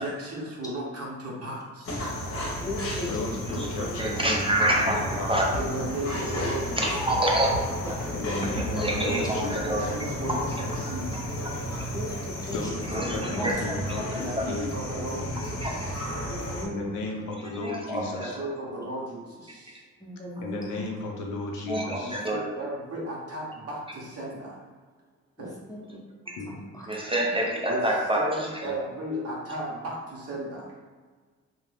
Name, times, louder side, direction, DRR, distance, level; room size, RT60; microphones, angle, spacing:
voice 1, 0.0-2.1 3.8-3.9 5.5-6.8 9.1-11.2 14.1-16.0 18.0-19.8 22.0-24.6 25.4-25.5 27.7-27.8 28.1-30.9, right 1 dB, 50° right, -5 dB, 0.7 m, -35 dB
sound 1, 1.8-16.7, equal, 50° left, 0.8 m, -33 dB
voice 2, 2.6-3.1 3.8-4.0 8.2-8.5 11.9-12.9 13.3-13.5 16.3-17.1 20.0-20.8 25.4-26.0 26.5-26.9, left 1 dB, 10° left, -5 dB, 0.7 m, -37 dB
voice 3, 3.1-5.3 8.1-9.7 12.5-14.0 14.5-14.7 16.6-18.4 20.4-22.2 26.4-26.5, left 3 dB, 85° left, 0 dB, 0.5 m, -35 dB
voice 4, 4.0-5.5 6.8-7.6 7.9-8.0 8.6-10.4 11.1-11.2 12.9-14.5 15.6-15.7 17.5-18.5 21.6-22.4 26.9-28.5, right 1 dB, 20° right, -2 dB, 0.4 m, -27 dB
Bowed string instrument, 8.5-14.9, left 1 dB, 90° right, 0.5 m, -46 dB
2.5 x 2.0 x 3.2 m, 1.5 s
cardioid pair, 90°, 30 cm